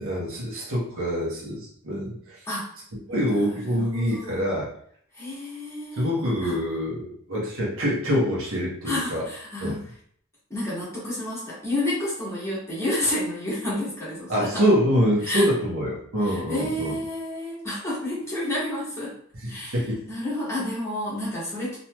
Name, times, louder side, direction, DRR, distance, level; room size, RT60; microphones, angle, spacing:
voice 1, 0.0-2.4 2.9-4.7 6.0-9.2 9.6-9.8 14.3-17.0 19.4-20.0, equal, 65° right, -4 dB, 1.0 m, -25 dB
voice 2, 3.1-4.4 5.1-6.1 6.4-6.6 8.8-9.8 10.5-14.6 15.2-15.5 16.2-19.1 19.5-19.8 20.1-21.8, left 1 dB, 15° left, -8 dB, 1.2 m, -30 dB
3.0 x 2.7 x 2.2 m, 0.64 s
head